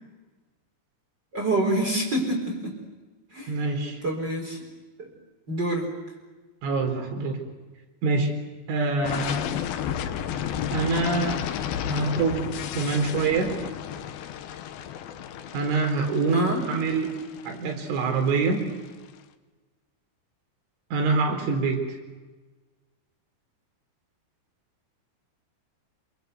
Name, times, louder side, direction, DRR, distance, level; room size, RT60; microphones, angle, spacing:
voice 1, 1.3-2.7 3.3-3.5 4.0-4.6 5.0-5.1 5.5-5.9 16.3-16.6, right 1 dB, 25° right, 1 dB, 4.4 m, -26 dB
voice 2, 3.5-4.0 6.6-7.4 8.0-8.3 8.7-9.5 10.7-11.4 11.9-13.5 15.5-17.2 17.5-18.6 20.9-21.9, right 4 dB, 90° right, 4 dB, 6.5 m, -25 dB
sound 1, 9.0-18.9, left 9 dB, 65° left, 2.6 m, -32 dB
27.0 x 25.0 x 8.2 m, 1.3 s
omnidirectional pair, 5.4 m